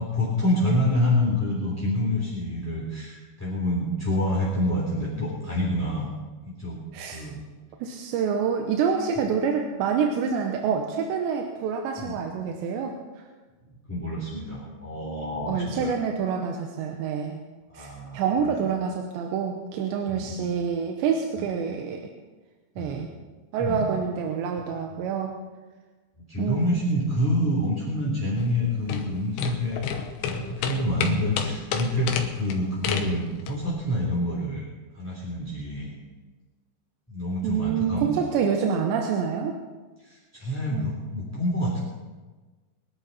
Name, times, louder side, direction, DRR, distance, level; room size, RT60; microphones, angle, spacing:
voice 1, 0.0-6.1 6.4-6.8 7.1-7.4 12.0-12.2 13.9-16.0 17.7-18.5 20.1-20.4 21.4-21.5 22.8-23.0 23.6-23.9 24.9-25.0 26.2-29.9 30.2-34.7 34.9-35.9 37.1-38.1 40.0-41.8, left 1 dB, 5° left, -5 dB, 2.3 m, -27 dB
voice 2, 7.8-13.2 15.5-17.4 17.7-22.1 22.8-23.1 23.5-25.4 26.4-26.7 37.4-39.6 40.7-40.9, right 6 dB, 90° right, 3 dB, 3.3 m, -27 dB
sound 1, 28.4-33.7, left 7 dB, 90° left, 3.4 m, -31 dB
23.5 x 11.5 x 4.2 m, 1.3 s
omnidirectional pair, 4.9 m